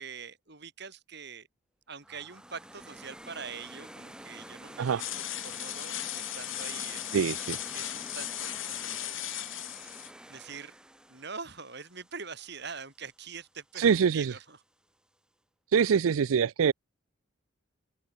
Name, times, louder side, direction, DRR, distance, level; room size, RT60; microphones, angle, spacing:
voice 1, 0.0-1.5 1.9-7.1 7.4-9.4 9.8-10.0 10.3-10.8 11.1-14.6, right 5 dB, 55° right, 3.9 m, -44 dB
sound 1, 2.0-13.0, right 1 dB, 5° right, 1.7 m, -48 dB
sound 2, 5.0-10.1, left 14 dB, 70° left, 3.5 m, -37 dB
voice 2, 7.1-7.6 13.8-14.3 15.7-16.7, right 7 dB, 85° right, 0.4 m, -24 dB
head